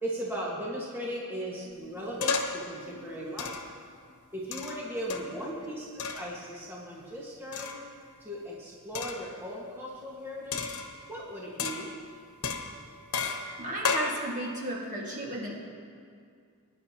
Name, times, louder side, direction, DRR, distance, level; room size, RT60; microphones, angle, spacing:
voice 1, 0.0-3.6 4.3-7.8 8.2-10.6 11.1-11.9, equal, 10° right, -6 dB, 1.6 m, -37 dB
sound 1, 2.2-2.7 3.4-3.8 4.5-5.4 6.0-6.3 7.5-8.0 8.9-9.3 10.5-11.2 11.6-12.1 12.4-14.2, left 5 dB, 85° left, 1.0 m, -33 dB
voice 2, 5.2-5.7 13.6-15.6, right 1 dB, 35° right, -3 dB, 1.9 m, -35 dB
21.5 x 10.0 x 2.9 m, 2.2 s
head